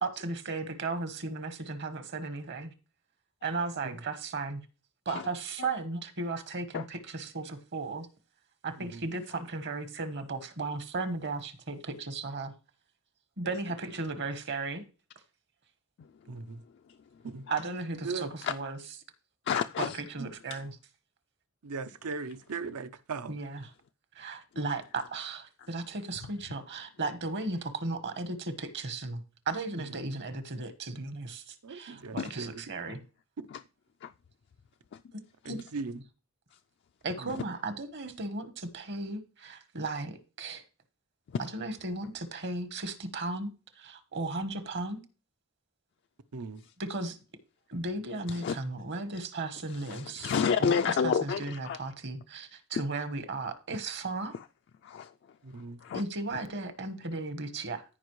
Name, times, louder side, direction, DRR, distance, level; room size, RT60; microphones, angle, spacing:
voice 1, 0.0-2.7 3.4-4.6 5.0-8.1 8.6-12.5 13.4-14.8 17.5-18.8 19.8-20.7 23.3-23.7 24.1-33.0 35.5-35.6 37.0-40.6 41.4-43.5 43.7-45.0 46.8-47.2 47.7-50.3 50.6-54.3 55.9-57.8, right 3 dB, 50° right, 1.1 m, -35 dB
voice 2, 16.3-16.6 17.2-17.4 18.0-18.3 20.2-20.3 21.6-23.3 29.8-30.1 31.6-32.5 35.4-36.0 37.2-37.4 46.3-46.6 55.4-55.8, right 4 dB, 80° right, 0.7 m, -38 dB
voice 3, 16.9-17.2 17.5-17.6 18.4-18.5 19.5-20.0 20.5-20.6 32.2-32.3 32.9-33.0 33.5-33.6 34.0-34.1 34.9-35.0 35.4-35.5 36.5-36.6 37.3-37.4 41.3-41.4 48.3-48.6 49.7-51.8 54.3-54.4 54.8-56.0 56.3-56.4, left 6 dB, 50° left, 0.3 m, -31 dB
14.0 x 5.2 x 3.1 m
head